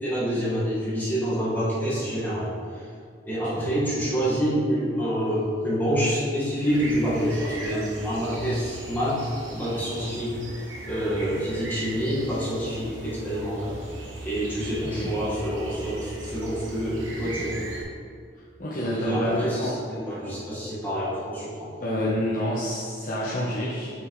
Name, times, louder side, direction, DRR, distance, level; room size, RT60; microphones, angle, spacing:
voice 1, 0.0-2.5 3.2-10.4 10.9-13.8 14.2-17.6 18.8-21.7, equal, 10° left, -9 dB, 1.5 m, -27 dB
sound 1, 6.6-17.8, right 2 dB, 90° right, 1.2 m, -39 dB
voice 2, 14.8-15.1 18.6-19.8 21.8-23.9, equal, 45° left, -7 dB, 0.8 m, -28 dB
6.1 x 5.9 x 3.1 m, 2.2 s
head